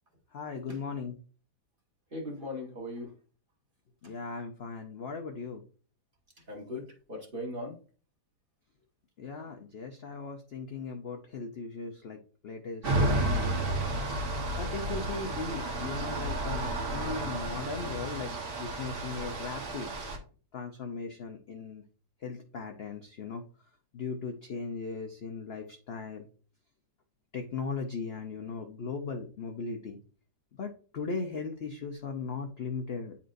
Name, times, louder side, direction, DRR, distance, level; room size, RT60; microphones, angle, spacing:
voice 1, 0.3-1.2 4.0-5.6 9.2-13.9 14.6-18.3 18.6-19.9 20.5-21.8 22.2-23.4 23.9-26.3 27.3-30.0 30.6-33.2, left 4 dB, 65° left, 4 dB, 0.6 m, -38 dB
voice 2, 2.1-3.1 6.5-7.7, left 1 dB, 30° right, -1 dB, 1.5 m, -38 dB
sound 1, 12.8-20.2, right 1 dB, 60° right, 1.7 m, -32 dB
9.2 x 4.3 x 2.5 m, 0.40 s
omnidirectional pair, 1.9 m